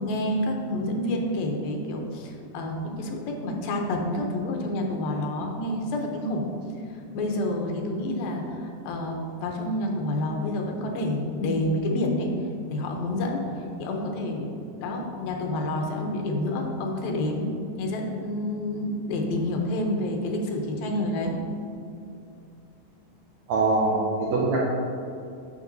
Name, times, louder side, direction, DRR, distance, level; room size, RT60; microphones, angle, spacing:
voice 1, 0.0-6.4 7.1-12.3 12.7-14.5 14.8-17.5 17.8-21.4, left 1 dB, 85° left, 1 dB, 2.7 m, -28 dB
voice 2, 23.5-24.6, right 3 dB, 85° right, -4 dB, 1.6 m, -23 dB
9.2 x 6.6 x 2.7 m, 2.5 s
omnidirectional pair, 4.1 m